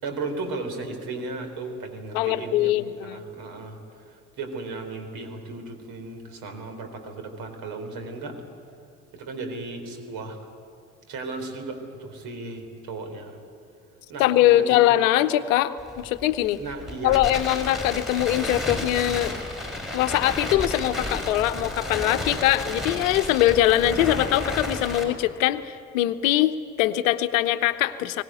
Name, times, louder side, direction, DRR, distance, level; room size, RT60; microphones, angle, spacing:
voice 1, 0.0-2.7 3.0-3.8 4.1-8.4 9.1-10.4 11.1-13.4 14.1-15.0 16.6-17.3, right 3 dB, 50° right, 6 dB, 4.0 m, -35 dB
voice 2, 2.1-3.2 14.2-16.6 17.0-19.3 19.9-28.2, left 14 dB, 65° left, 12 dB, 0.9 m, -22 dB
Crackle, 15.8-25.0, left 2 dB, ahead, 5.7 m, -32 dB
22.5 x 17.5 x 9.4 m, 2.4 s
figure-of-eight pair, 55°, 43 cm